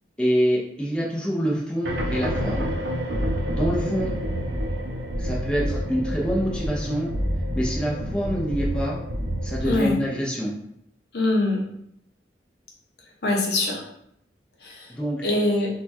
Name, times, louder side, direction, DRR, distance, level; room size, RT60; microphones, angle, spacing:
voice 1, 0.2-2.7 3.5-4.1 5.2-7.1 7.5-9.0 9.4-10.5 14.9-15.3, equal, 5° left, -5 dB, 0.6 m, -26 dB
sound 1, 1.8-9.9, equal, 75° right, 0.6 m, -28 dB
voice 2, 9.6-10.0 11.1-11.7 13.2-13.8 14.6-14.9 15.2-15.7, left 2 dB, 65° left, -1 dB, 0.8 m, -23 dB
4.4 x 2.3 x 2.6 m, 0.75 s
head